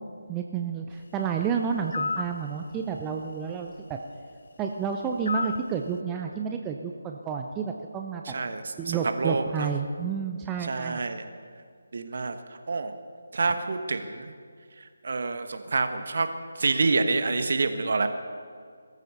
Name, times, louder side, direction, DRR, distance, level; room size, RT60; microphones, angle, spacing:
voice 1, 0.3-4.0 4.6-8.2 8.8-11.1, right 6 dB, 10° right, 3 dB, 0.6 m, -30 dB
sound 1, 1.9-2.3 5.3-5.7, left 4 dB, 50° left, 0.5 m, -29 dB
voice 2, 8.2-9.7 10.6-11.2 11.9-12.4 12.7-12.9 13.3-14.3 15.0-16.3 16.6-18.1, right 3 dB, 50° right, 8 dB, 1.3 m, -27 dB
21.0 x 14.0 x 4.3 m, 2.1 s
figure-of-eight pair, 150°, 0 cm